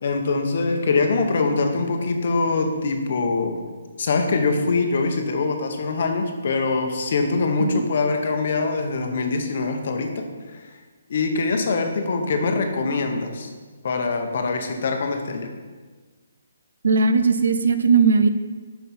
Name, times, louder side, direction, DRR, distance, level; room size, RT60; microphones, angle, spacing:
voice 1, 0.0-3.6 4.0-10.3 10.5-10.7 11.1-13.5 13.8-15.5, left 3 dB, 50° left, 5 dB, 0.8 m, -23 dB
voice 2, 16.8-18.3, right 4 dB, 70° right, 10 dB, 0.5 m, -18 dB
5.6 x 5.5 x 4.3 m, 1.4 s
hypercardioid pair, 165°, 0 cm